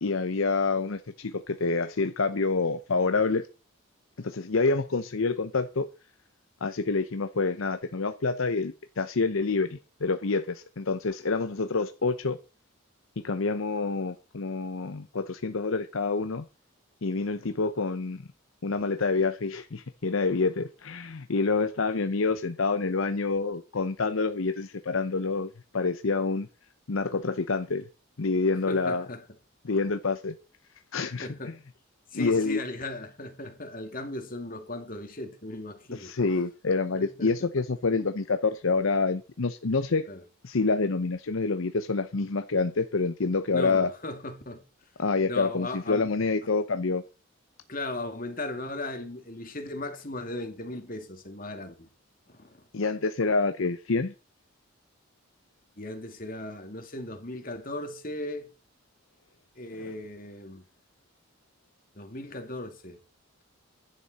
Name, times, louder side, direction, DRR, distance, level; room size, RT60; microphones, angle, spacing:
voice 1, 0.0-3.5 4.2-5.9 6.6-12.4 13.2-16.4 17.0-18.3 18.6-26.5 26.9-27.9 28.2-29.1 29.6-30.4 30.9-31.5 32.1-32.6 35.9-40.1 40.4-43.9 45.0-47.0 52.7-54.1, left 4 dB, 75° left, 0.7 m, -27 dB
voice 2, 28.7-29.2 31.2-31.6 32.1-36.1 36.9-37.5 40.1-40.2 43.5-44.6 45.3-46.1 47.7-51.9 52.3-52.6 55.8-58.5 59.6-60.7 62.0-63.0, left 2 dB, 40° left, 2.3 m, -37 dB
15.5 x 11.0 x 4.1 m
head